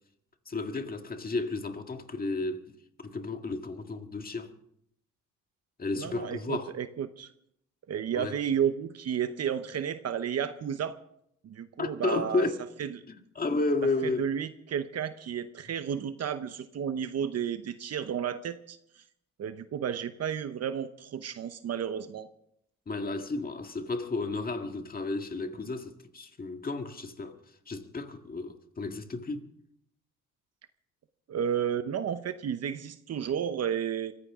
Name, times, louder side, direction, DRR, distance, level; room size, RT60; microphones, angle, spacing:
voice 1, 0.5-2.6 3.0-4.5 5.8-6.7 8.1-8.4 11.8-12.6 13.1-14.3 22.9-27.4 27.7-29.5, left 3 dB, 30° left, 1.9 m, -32 dB
voice 2, 6.0-7.3 7.9-10.9 11.4-12.5 12.8-13.0 14.0-19.0 19.4-22.3 31.3-34.1, right 8 dB, 55° right, 0.9 m, -32 dB
24.0 x 15.0 x 3.7 m
cardioid pair, 90°, 30 cm